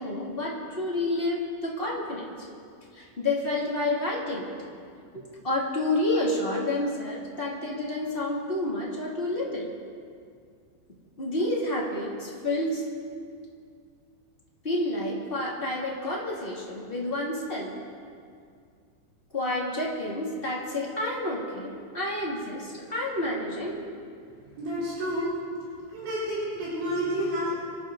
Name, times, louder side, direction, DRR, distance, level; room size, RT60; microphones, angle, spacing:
voice 1, 0.0-2.3 2.9-4.5 5.4-9.7 11.2-12.8 14.6-17.7 19.3-23.9, left 1 dB, 20° left, -5 dB, 1.4 m, -29 dB
voice 2, 24.6-25.3 25.9-27.6, equal, 75° right, -8 dB, 6.2 m, -29 dB
26.5 x 13.0 x 3.9 m, 2.2 s
omnidirectional pair, 5.4 m